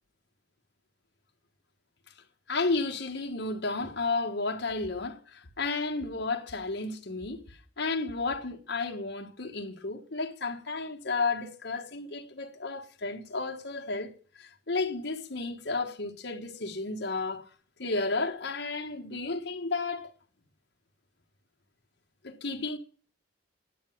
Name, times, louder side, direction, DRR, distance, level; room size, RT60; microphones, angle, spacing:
voice 1, 2.5-7.4 7.8-14.1 14.4-17.5 17.8-20.1 22.2-22.8, left 3 dB, 65° left, 1.5 m, -32 dB
10.0 x 8.7 x 9.2 m
head